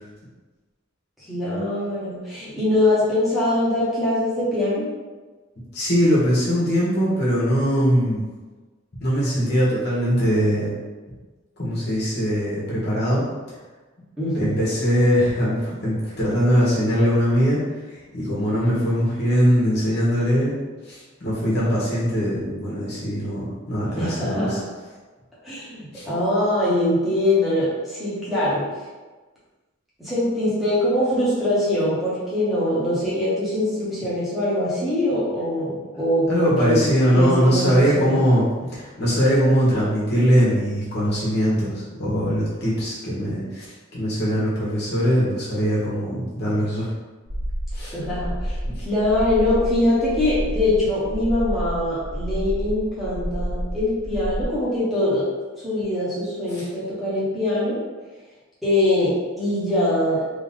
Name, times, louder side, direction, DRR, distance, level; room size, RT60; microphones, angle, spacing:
voice 1, 1.2-4.9 14.2-14.6 23.9-24.6 25.4-28.6 30.0-35.7 36.0-38.2 47.8-48.6 48.8-55.2 55.6-57.8 58.6-60.3, left 1 dB, ahead, -10 dB, 1.1 m, -23 dB
voice 2, 5.7-8.2 9.0-10.7 11.6-13.2 14.3-17.6 17.9-20.5 20.8-24.6 25.9-26.1 35.7-35.8 36.3-38.4 38.7-46.9 47.7-47.9 48.6-48.8 56.5-56.7, equal, 50° left, -8 dB, 1.3 m, -21 dB
sound 1, 47.3-54.4, equal, 65° right, 1.3 m, -29 dB
3.3 x 2.9 x 3.6 m, 1.3 s
head